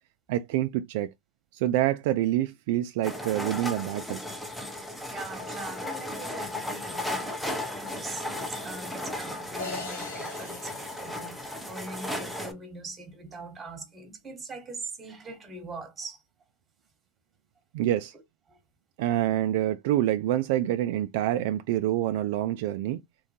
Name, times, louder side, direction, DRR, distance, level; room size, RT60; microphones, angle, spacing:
voice 1, 0.3-1.1 1.5-4.2 17.7-18.1 19.0-23.0, right 13 dB, 65° right, 0.3 m, -26 dB
sound 1, 3.0-12.5, left 1 dB, ahead, 0.7 m, -35 dB
voice 2, 4.7-16.2 18.1-18.2 18.5-18.6, right 3 dB, 20° right, 1.2 m, -42 dB
sound 2, 9.6-11.9, left 3 dB, 85° left, 1.5 m, -41 dB
3.7 x 2.2 x 2.7 m
supercardioid pair, 125°, 0 cm